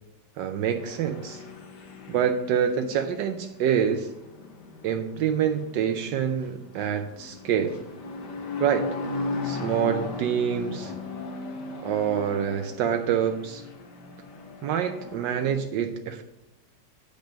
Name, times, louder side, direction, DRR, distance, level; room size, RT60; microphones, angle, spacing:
voice 1, 0.4-1.4 2.1-4.1 4.8-7.8 8.6-8.9 9.4-10.9 11.8-13.6 14.6-16.2, right 8 dB, 80° right, 6 dB, 1.2 m, -26 dB
sound 1, 0.8-15.6, left 3 dB, 65° left, 1.6 m, -37 dB
9.2 x 5.3 x 5.1 m, 0.90 s
omnidirectional pair, 2.0 m